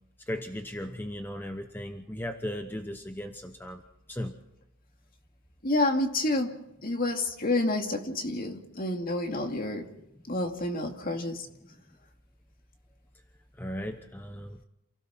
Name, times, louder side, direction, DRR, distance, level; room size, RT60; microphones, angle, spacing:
voice 1, 0.3-3.8 4.1-4.4 13.6-14.6, left 1 dB, 10° left, 5 dB, 1.0 m, -36 dB
voice 2, 5.6-6.5 6.8-9.9 10.3-11.5, left 2 dB, 40° left, 4 dB, 2.4 m, -29 dB
28.5 x 17.0 x 5.9 m, 0.89 s
head